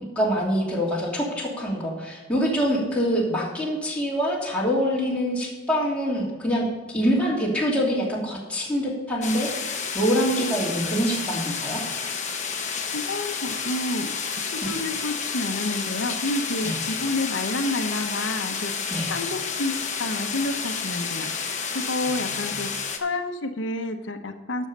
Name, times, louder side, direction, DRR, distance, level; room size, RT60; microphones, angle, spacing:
voice 1, 0.2-9.5 9.9-11.8 14.6-14.7 16.6-16.8 18.9-19.1 22.0-22.6, equal, 5° left, -5 dB, 2.8 m, -25 dB
sound 1, 9.2-23.0, left 5 dB, 40° left, 1.2 m, -30 dB
voice 2, 12.9-14.1 14.4-21.6 21.9-22.7 23.0-24.7, left 2 dB, 70° left, 5 dB, 1.0 m, -29 dB
12.5 x 6.5 x 5.4 m, 1.2 s
head